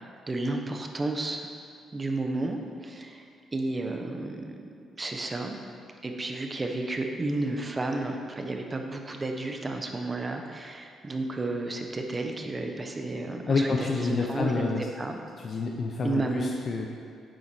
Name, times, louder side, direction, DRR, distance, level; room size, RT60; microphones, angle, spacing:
voice 1, 0.0-1.5 1.9-3.2 3.5-4.6 5.0-5.6 6.0-15.2 16.0-16.5, right 2 dB, 25° right, 4 dB, 1.0 m, -32 dB
voice 2, 13.5-14.8 15.4-16.9, left 4 dB, 50° left, 1 dB, 0.8 m, -28 dB
9.5 x 8.0 x 4.4 m, 2.3 s
cardioid pair, 90°, 0 cm